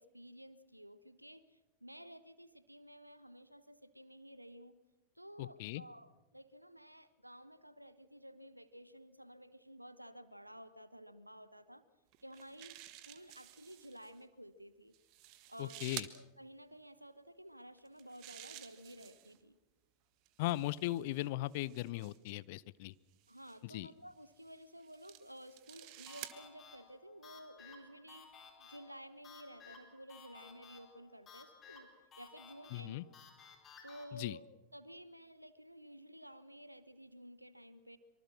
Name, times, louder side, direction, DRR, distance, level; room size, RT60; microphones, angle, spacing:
voice 1, 0.0-4.8 5.1-11.8 12.2-14.9 15.5-15.9 16.1-19.6 23.3-31.9 32.2-33.2 33.8-34.4 34.7-38.0, equal, 90° right, 15 dB, 1.1 m, -54 dB
voice 2, 5.4-5.8 15.6-16.1 20.4-22.9 23.6-23.9 32.7-33.0 34.1-34.4, left 17 dB, 50° left, 20 dB, 0.7 m, -38 dB
sound 1, 12.1-14.1 14.9-16.2 17.8-19.4 20.3-22.4 23.2-23.6 24.4-26.4, right 15 dB, 45° right, 1.6 m, -52 dB
sound 2, 26.1-34.1, left 5 dB, 25° left, 4.5 m, -57 dB
25.0 x 24.5 x 6.2 m, 1.0 s
figure-of-eight pair, 90°, 0 cm